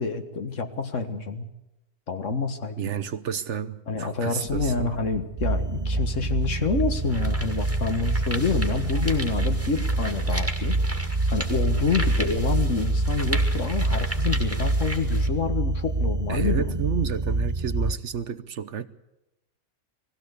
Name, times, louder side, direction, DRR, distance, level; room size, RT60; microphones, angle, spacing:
voice 1, 0.0-1.5 2.1-2.8 3.9-10.8 11.3-16.8, left 4 dB, 65° left, 7 dB, 2.0 m, -27 dB
voice 2, 2.8-5.0 16.3-18.9, right 8 dB, 65° right, 13 dB, 1.1 m, -31 dB
sound 1, 4.4-7.4, left 2 dB, 80° left, 3.4 m, -39 dB
sound 2, 5.4-17.9, right 2 dB, 25° right, 0.9 m, -26 dB
sound 3, 6.1-6.2 6.8-15.3, right 1 dB, 10° right, 2.1 m, -36 dB
19.5 x 16.5 x 8.3 m, 0.94 s
omnidirectional pair, 1.4 m